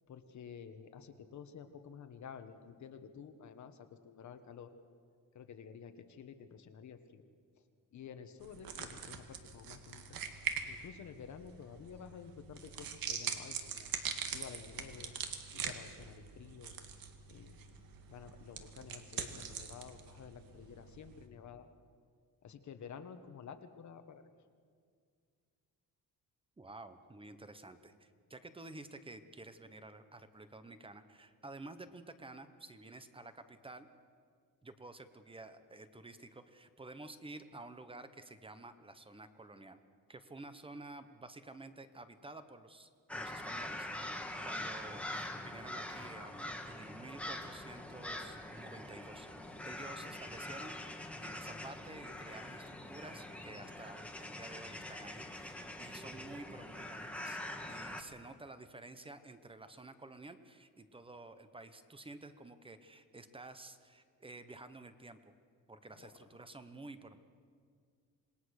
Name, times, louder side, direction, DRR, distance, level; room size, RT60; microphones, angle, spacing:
voice 1, 0.1-4.7 5.3-7.2 7.6-7.7 7.9-10.2 10.7-13.9 14.3-15.2 15.5-16.8 17.3-17.6 18.1-21.7 22.4-24.3 65.9-66.1, left 7 dB, 55° left, 8 dB, 1.4 m, -51 dB
sound 1, 8.4-21.3, right 7 dB, 75° right, 2.0 m, -43 dB
voice 2, 26.6-33.9 34.6-39.8 40.1-49.3 49.6-50.7 51.2-57.4 57.7-65.3 65.7-67.2, right 2 dB, 15° right, 10 dB, 1.0 m, -51 dB
sound 2, 43.1-58.0, left 1 dB, 5° left, 1.5 m, -44 dB
27.5 x 20.0 x 6.5 m, 2.1 s
cardioid pair, 160°, 35 cm